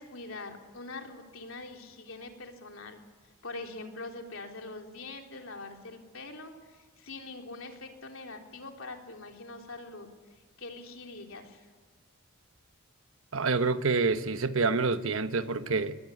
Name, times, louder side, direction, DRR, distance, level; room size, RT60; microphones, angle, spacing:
voice 1, 0.0-3.0 3.4-6.5 7.0-10.1 10.6-11.7, left 3 dB, 65° left, 3 dB, 3.6 m, -43 dB
voice 2, 13.3-15.9, right 4 dB, 65° right, 11 dB, 1.1 m, -27 dB
22.0 x 20.5 x 9.9 m, 1.4 s
head